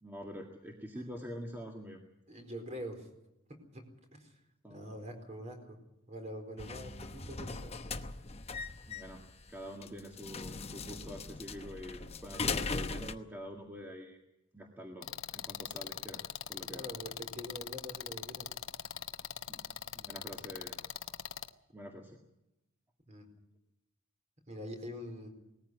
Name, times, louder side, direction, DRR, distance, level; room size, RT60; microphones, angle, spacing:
voice 1, 0.0-2.0 4.6-5.0 8.9-9.2 9.5-14.2 14.5-15.1 15.3-16.2 16.5-16.9 19.5-19.7 20.0-20.8 21.7-22.2, equal, 10° right, 1 dB, 2.0 m, -46 dB
voice 2, 2.3-3.1 3.7-3.8 4.1-4.3 4.7-5.8 6.1-7.8 16.7-18.5 23.1-23.3 24.5-25.3, equal, 35° right, 5 dB, 4.5 m, -44 dB
sound 1, 6.6-13.1, left 4 dB, 30° left, 1.0 m, -39 dB
sound 2, 15.0-21.5, left 9 dB, 65° left, 1.0 m, -41 dB
19.5 x 14.5 x 9.6 m, 0.89 s
head